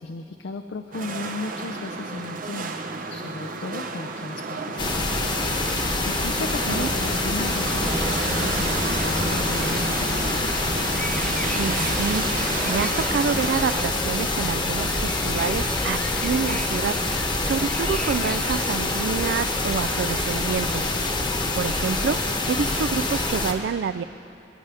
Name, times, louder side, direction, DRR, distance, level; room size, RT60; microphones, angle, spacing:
voice 1, 0.0-2.7 3.1-5.1 6.0-10.6, left 3 dB, 80° left, 7 dB, 0.5 m, -35 dB
sound 1, 0.9-13.8, right 3 dB, 50° right, 0.8 m, -31 dB
sound 2, 4.8-23.5, left 2 dB, 25° left, 1.1 m, -26 dB
voice 2, 6.4-6.9 11.5-20.9 21.5-24.0, right 6 dB, 65° right, 16 dB, 0.3 m, -28 dB
sound 3, 7.7-19.7, left 1 dB, 5° left, 0.4 m, -37 dB
25.0 x 9.6 x 3.4 m, 2.9 s
head